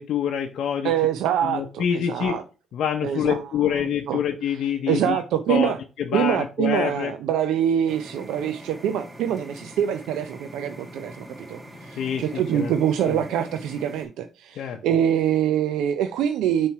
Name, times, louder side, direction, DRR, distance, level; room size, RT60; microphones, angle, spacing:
voice 1, 0.0-0.9 1.4-2.4 2.7-5.2 5.5-7.1 12.0-12.7 13.1-13.2 14.6-14.8, left 8 dB, 70° left, 0.6 m, -26 dB
voice 2, 0.8-2.4 3.0-3.4 4.1-4.2 4.9-5.8 6.1-16.7, right 9 dB, 90° right, 0.4 m, -24 dB
sound 1, 7.8-14.0, equal, 10° right, 2.3 m, -43 dB
7.1 x 3.1 x 4.6 m
cardioid pair, 90°, 0 cm